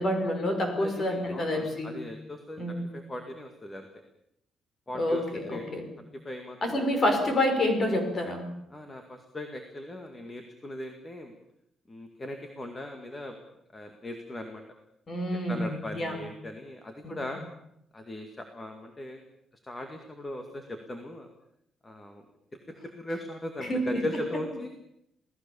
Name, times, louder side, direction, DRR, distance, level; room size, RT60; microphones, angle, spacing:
voice 1, 0.0-2.0 2.6-2.9 4.9-5.9 6.6-8.5 15.1-16.2 17.0-17.2 23.7-23.8, left 1 dB, 30° left, 5 dB, 5.7 m, -28 dB
voice 2, 0.8-2.6 2.9-3.9 4.9-5.6 6.2-6.6 7.0-7.2 8.7-11.3 11.9-13.3 13.7-14.6 15.5-17.4 17.9-19.2 19.6-21.3 21.8-22.2 22.8-24.7, left 1 dB, 15° left, 5 dB, 2.1 m, -38 dB
28.5 x 18.0 x 7.2 m, 0.80 s
cardioid pair, 165°, 0 cm